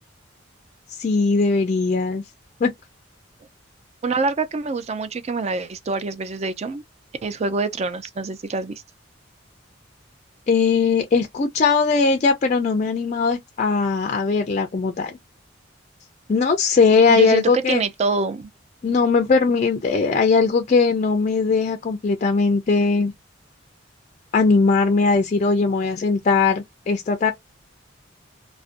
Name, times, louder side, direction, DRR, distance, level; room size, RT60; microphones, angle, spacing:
voice 1, 0.9-2.2 2.6-2.7 10.5-15.1 16.3-17.8 18.8-23.1 24.3-27.3, left 4 dB, 40° left, 0.4 m, -19 dB
voice 2, 4.0-6.8 7.2-8.8 17.1-18.5, right 4 dB, 35° right, 0.4 m, -25 dB
2.4 x 2.1 x 2.4 m
head